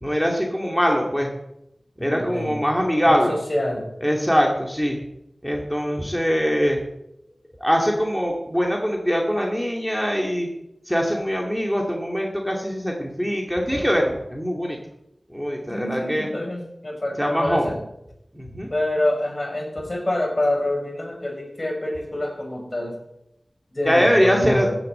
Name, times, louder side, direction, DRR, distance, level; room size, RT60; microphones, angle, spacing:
voice 1, 0.0-1.3 2.0-3.3 4.0-5.0 5.4-6.8 7.6-10.5 10.9-14.8 15.3-16.3 17.2-17.7 18.3-18.7 23.9-24.7, equal, ahead, 0 dB, 2.4 m, -22 dB
voice 2, 2.0-2.6 3.1-3.9 15.7-17.8 18.7-23.0 23.7-24.8, left 1 dB, 40° left, 2 dB, 4.9 m, -26 dB
14.5 x 7.1 x 8.6 m, 0.84 s
wide cardioid pair, 60°, 0 cm